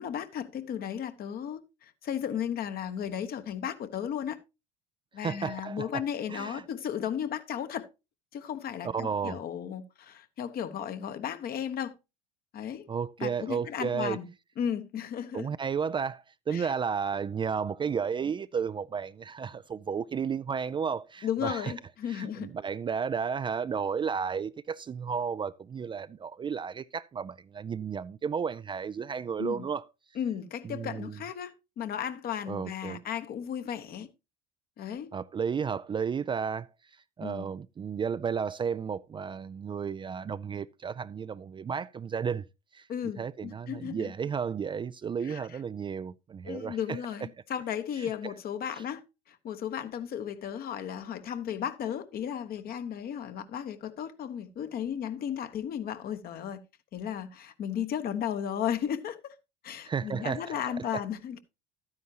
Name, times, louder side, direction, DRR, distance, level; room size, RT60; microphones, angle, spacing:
voice 1, 0.0-4.4 5.1-7.9 8.3-11.9 12.5-12.9 13.2-14.3 14.6-15.5 16.5-16.7 21.2-22.5 29.4-29.6 30.1-34.1 34.8-35.1 37.2-37.5 42.9-44.1 45.2-45.5 46.4-49.0 49.3-56.6 56.9-59.3 59.6-61.4, left 9 dB, 50° left, 1.2 m, -35 dB
voice 2, 5.2-5.9 6.3-6.6 8.8-9.4 12.9-14.2 15.3-21.7 22.1-29.9 30.6-31.2 32.5-33.0 35.1-36.7 37.2-42.5 42.7-42.9 43.2-47.0 48.0-48.3 59.8-61.0, right 6 dB, 25° right, 0.4 m, -33 dB
12.0 x 9.6 x 2.9 m
hypercardioid pair, 70°, 20 cm